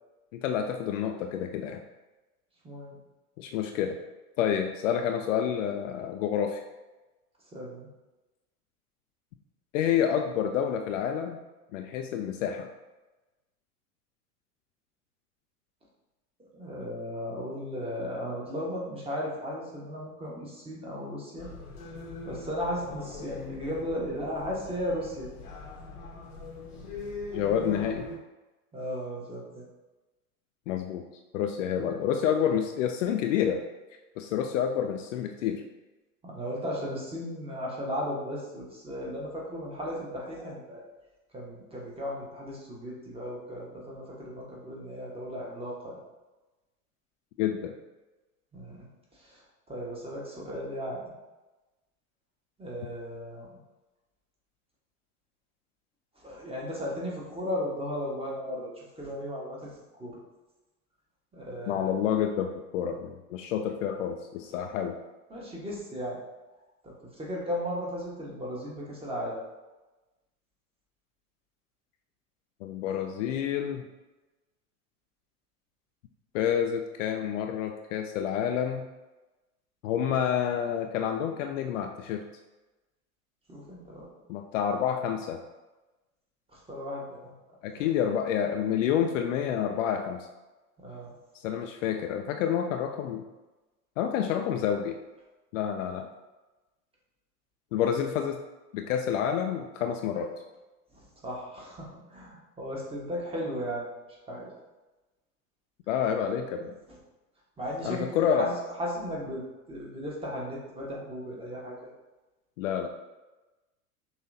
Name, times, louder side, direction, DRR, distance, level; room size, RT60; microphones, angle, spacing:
voice 1, 0.3-1.8 3.4-4.0 4.4-6.6 9.7-11.4 11.7-12.7 27.3-28.0 30.7-31.0 31.3-33.6 34.2-35.6 47.4-47.8 61.7-65.0 72.6-73.8 76.3-78.9 79.8-82.2 84.3-85.4 87.6-90.2 91.4-93.2 94.0-95.0 95.5-96.1 97.7-98.4 98.7-100.3 105.9-106.8 107.8-108.5 112.6-112.9, left 8 dB, 55° left, 4 dB, 0.5 m, -28 dB
voice 2, 2.6-3.0 7.5-7.9 16.5-21.5 22.2-25.3 28.7-29.6 31.8-32.0 36.2-40.8 41.3-46.0 48.5-48.9 49.2-49.4 49.7-51.0 52.6-53.6 56.2-59.7 60.0-60.2 61.3-61.9 65.3-66.2 66.8-69.4 83.5-84.1 86.5-87.3 87.7-87.9 90.8-91.1 100.9-103.9 104.3-104.5 107.6-111.9, equal, 10° right, -4 dB, 1.3 m, -36 dB
sound 1, 21.4-28.2, left 3 dB, 85° left, 1.1 m, -41 dB
5.6 x 3.1 x 2.7 m, 1.1 s
hypercardioid pair, 90°, 45 cm